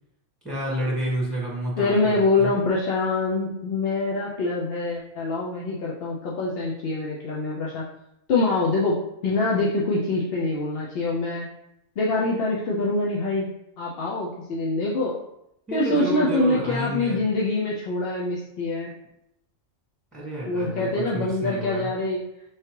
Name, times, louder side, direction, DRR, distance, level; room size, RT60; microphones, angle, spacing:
voice 1, 0.4-2.5 15.7-17.2 20.1-20.9 21.1-21.9, right 1 dB, ahead, -6 dB, 1.3 m, -29 dB
voice 2, 1.8-7.8 8.3-11.5 12.0-13.5 13.8-15.2 15.7-18.9 20.4-22.2, left 2 dB, 60° left, -4 dB, 0.7 m, -25 dB
4.8 x 3.2 x 2.9 m, 0.81 s
omnidirectional pair, 1.4 m